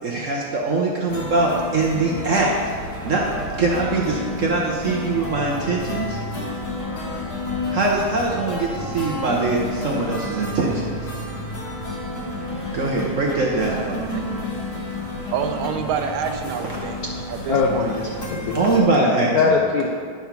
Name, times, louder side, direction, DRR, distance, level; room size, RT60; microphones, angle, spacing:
voice 1, 0.0-2.5 3.0-3.2 3.6-6.2 7.7-10.7 12.7-14.0 18.5-19.5, right 3 dB, 65° right, -2 dB, 0.7 m, -22 dB
sound 1, 1.1-18.8, left 2 dB, 50° left, 1.5 m, -31 dB
voice 2, 15.3-17.0 17.3-18.0, right 7 dB, 80° right, 6 dB, 1.4 m, -27 dB
voice 3, 17.5-18.9 19.3-19.9, left 4 dB, 75° left, -1 dB, 0.8 m, -22 dB
10.0 x 3.6 x 5.8 m, 2.1 s
omnidirectional pair, 2.3 m